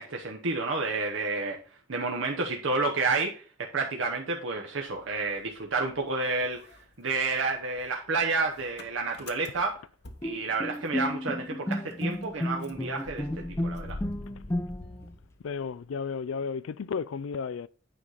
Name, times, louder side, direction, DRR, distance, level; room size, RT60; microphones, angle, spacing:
voice 1, 0.0-1.6 1.9-3.4 3.7-9.8 10.2-14.0, right 3 dB, 75° right, 0.9 m, -30 dB
Motor vehicle (road) / Engine starting, 4.9-6.1 6.4-11.1 11.4-11.5 11.7-15.8, left 2 dB, 55° left, 1.0 m, -46 dB
Bowed string instrument, 10.2-15.1, left 1 dB, 15° left, 0.6 m, -32 dB
voice 2, 15.4-17.7, left 5 dB, 80° left, 0.4 m, -33 dB
9.0 x 4.9 x 4.0 m
head